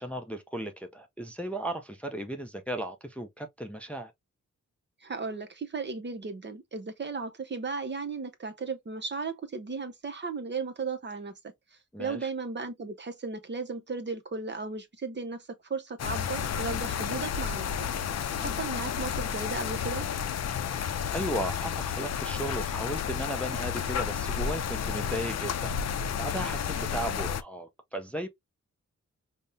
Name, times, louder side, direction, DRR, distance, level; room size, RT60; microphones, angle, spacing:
voice 1, 0.0-4.1 11.9-12.3 18.4-18.6 20.7-25.7 26.2-28.3, right 1 dB, 5° left, 0.5 m, -36 dB
voice 2, 5.0-11.4 12.0-17.9 18.4-20.1, right 4 dB, 40° right, 0.7 m, -35 dB
sound 1, 16.0-27.4, left 8 dB, 60° left, 0.5 m, -31 dB
5.2 x 2.1 x 2.6 m
wide cardioid pair, 110°, 29 cm